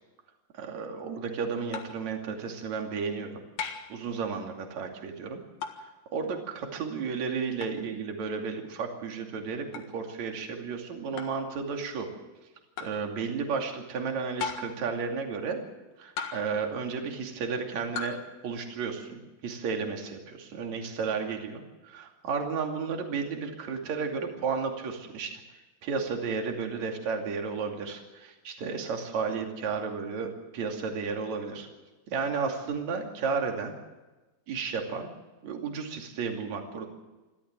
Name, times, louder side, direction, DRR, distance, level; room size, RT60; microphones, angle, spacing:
voice 1, 0.6-3.4 3.9-5.4 5.8-12.1 12.8-15.6 16.0-18.2 18.4-25.4 25.8-31.7 32.1-33.7 34.5-35.1 35.4-36.9, right 5 dB, 45° right, 2 dB, 3.2 m, -33 dB
sound 1, 1.7-2.1 3.6-4.0 5.6-5.9 7.6-7.8 9.7-9.9 11.2-11.4 12.8-13.0 14.4-14.9 16.2-16.6 18.0-18.3, left 6 dB, 60° left, 2.0 m, -36 dB
27.5 x 13.0 x 7.6 m, 1.1 s
omnidirectional pair, 5.6 m